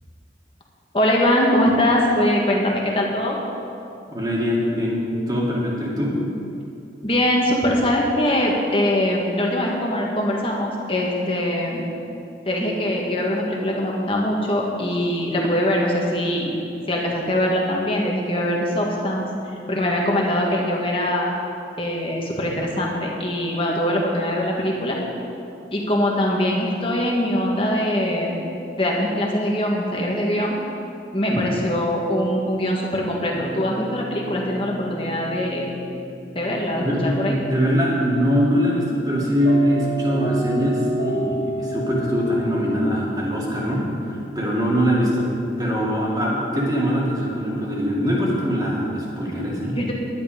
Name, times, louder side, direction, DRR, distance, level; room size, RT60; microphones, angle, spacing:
voice 1, 0.9-3.4 7.0-11.9 12.4-16.6 16.9-19.3 19.7-21.3 21.8-25.0 25.7-28.4 28.8-30.6 31.1-35.7 36.3-37.4 49.7-49.9, left 1 dB, 30° left, -2 dB, 1.7 m, -22 dB
voice 2, 4.1-6.2 31.3-31.4 36.8-45.3 45.6-49.8, equal, 20° right, -4 dB, 2.2 m, -22 dB
sound 1, 33.3-43.0, right 1 dB, 55° left, 2.5 m, -31 dB
11.0 x 10.5 x 5.2 m, 2.7 s
head